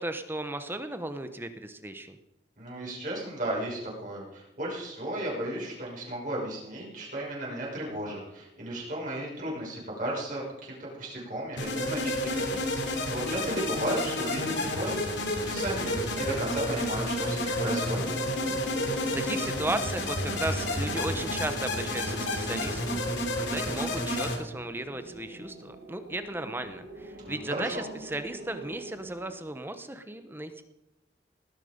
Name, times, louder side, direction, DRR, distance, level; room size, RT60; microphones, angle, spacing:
voice 1, 0.0-2.2 18.9-30.6, right 1 dB, 10° right, 9 dB, 1.0 m, -35 dB
voice 2, 2.6-18.1 27.2-27.8, right 1 dB, 45° right, -4 dB, 5.9 m, -35 dB
sound 1, 11.6-24.4, left 1 dB, 80° left, 3.1 m, -30 dB
sound 2, 16.8-29.4, right 1 dB, 80° right, 2.7 m, -45 dB
19.5 x 10.5 x 5.2 m, 0.93 s
head